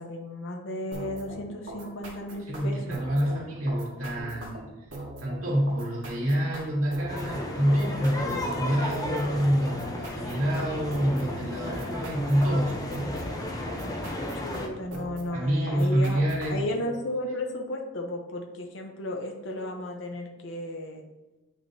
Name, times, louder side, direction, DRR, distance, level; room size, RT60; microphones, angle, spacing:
voice 1, 0.0-3.0 3.2-3.5 14.3-16.2 16.5-21.0, left 1 dB, 60° left, 2 dB, 0.8 m, -34 dB
sound 1, 0.9-16.8, right 1 dB, 65° right, 1.9 m, -41 dB
voice 2, 2.4-4.7 5.2-12.8 15.3-16.6, equal, 80° right, -5 dB, 2.4 m, -27 dB
sound 2, 7.1-14.7, left 1 dB, 15° left, 0.7 m, -34 dB
7.9 x 6.0 x 2.7 m, 1.1 s
head